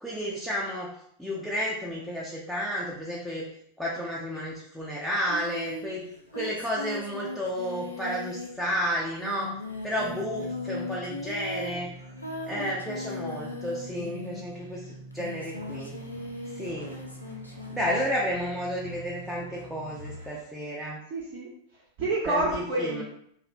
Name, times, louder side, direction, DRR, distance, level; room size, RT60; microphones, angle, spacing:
voice 1, 0.0-3.5 3.8-6.0 6.3-9.5 9.8-11.9 12.5-16.0 16.5-17.0 17.7-21.0 22.3-23.0, equal, ahead, -5 dB, 0.4 m, -32 dB
Singing, 5.3-14.6 15.1-18.0, left 2 dB, 80° left, 0.4 m, -38 dB
Organ, 9.5-20.3, right 2 dB, 45° left, 0.7 m, -46 dB
sound 1, 15.3-20.4, equal, 90° right, 0.5 m, -49 dB
voice 2, 21.1-23.0, right 2 dB, 45° right, -5 dB, 0.5 m, -29 dB
2.4 x 2.0 x 2.6 m, 0.70 s
figure-of-eight pair, 90°, 0 cm